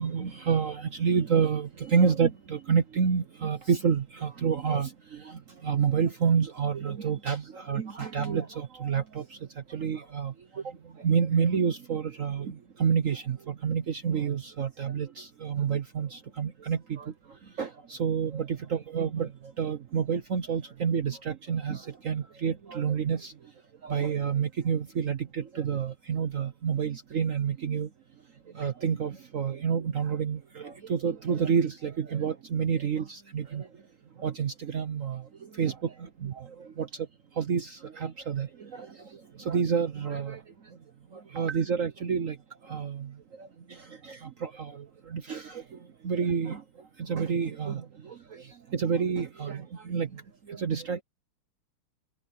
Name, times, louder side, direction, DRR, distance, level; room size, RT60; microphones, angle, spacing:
voice 1, 0.0-9.2 9.7-10.3 11.0-17.1 17.6-19.3 19.6-23.3 23.8-27.9 28.5-33.7 34.2-35.2 35.6-35.7 36.4-36.5 36.8-36.9 37.4-38.9 39.4-40.4 41.3-42.4 42.7-43.1 43.4-43.5 44.0-45.6 46.0-46.6 47.0-48.1 48.7-50.1 50.5-51.0, right 6 dB, 60° right, 0.8 m, -29 dB
open air
omnidirectional pair, 2.4 m